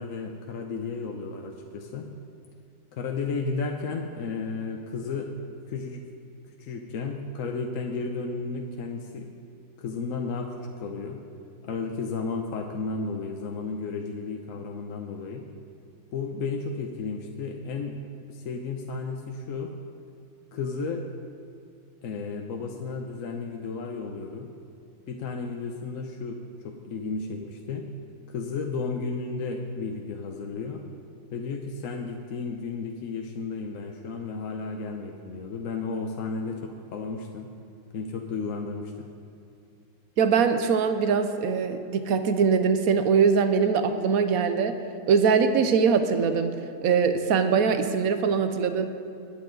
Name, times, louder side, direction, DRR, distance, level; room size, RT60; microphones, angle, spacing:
voice 1, 0.0-2.1 2.9-5.3 5.7-6.0 6.6-9.3 9.8-11.2 11.6-15.5 16.1-18.0 18.3-19.7 20.5-21.0 22.0-24.5 25.1-27.9 28.3-30.8 31.3-37.5 37.9-39.1, left 4 dB, 65° left, 2 dB, 1.1 m, -33 dB
voice 2, 40.2-44.7 45.1-48.9, right 6 dB, 70° right, 9 dB, 1.2 m, -22 dB
21.5 x 8.6 x 3.9 m, 2.6 s
omnidirectional pair, 1.6 m